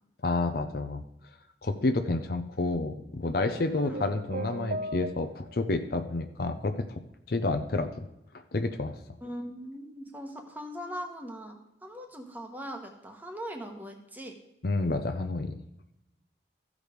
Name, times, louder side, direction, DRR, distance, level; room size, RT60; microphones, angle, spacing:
voice 1, 0.2-1.0 1.6-6.8 7.3-7.9 8.5-9.0 14.6-15.6, left 2 dB, 55° left, 8 dB, 0.6 m, -29 dB
sound 1, 3.5-5.6, right 2 dB, 55° right, 0.5 m, -37 dB
voice 2, 9.2-14.3, equal, 10° right, 4 dB, 1.1 m, -40 dB
14.0 x 4.9 x 5.0 m, 0.84 s
head